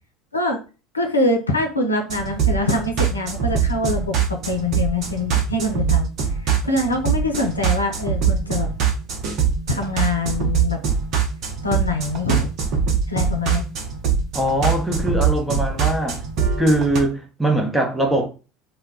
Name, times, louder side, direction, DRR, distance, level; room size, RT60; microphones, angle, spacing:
voice 1, 0.9-6.1 6.6-8.7 9.7-10.8 11.6-12.5 13.1-13.6, left 2 dB, 90° left, 0.5 m, -24 dB
sound 1, 2.1-17.0, right 7 dB, 50° right, 0.7 m, -23 dB
voice 2, 14.3-16.2 16.6-18.3, right 1 dB, 5° right, 0.7 m, -21 dB
2.2 x 2.1 x 3.6 m
figure-of-eight pair, 70°, 0 cm